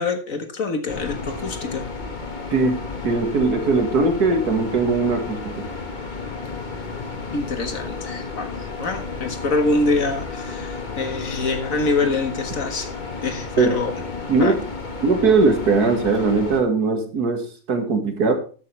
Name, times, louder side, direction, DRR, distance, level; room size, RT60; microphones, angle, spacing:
voice 1, 0.0-1.9 7.3-8.5 8.8-12.9 13.2-13.9 14.4-14.6, left 3 dB, 60° left, 7 dB, 1.9 m, -25 dB
sound 1, 0.9-16.6, left 4 dB, 30° left, 1.6 m, -32 dB
voice 2, 2.5-5.5 13.6-13.7 14.3-14.6 15.0-18.3, right 4 dB, 85° right, 6 dB, 2.4 m, -20 dB
13.0 x 8.8 x 3.3 m, 0.37 s
omnidirectional pair, 1.6 m